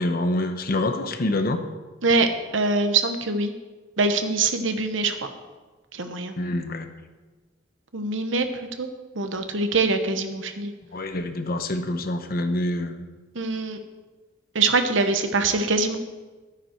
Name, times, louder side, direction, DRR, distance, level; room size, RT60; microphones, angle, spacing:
voice 1, 0.0-1.6 6.4-6.9 10.9-13.0, left 1 dB, 50° left, 7 dB, 1.0 m, -26 dB
voice 2, 2.0-3.5 4.0-5.3 5.9-6.3 7.9-8.9 9.1-10.7 13.3-13.8 14.5-16.0, right 3 dB, 80° right, 7 dB, 1.1 m, -24 dB
12.5 x 9.7 x 4.5 m, 1.3 s
head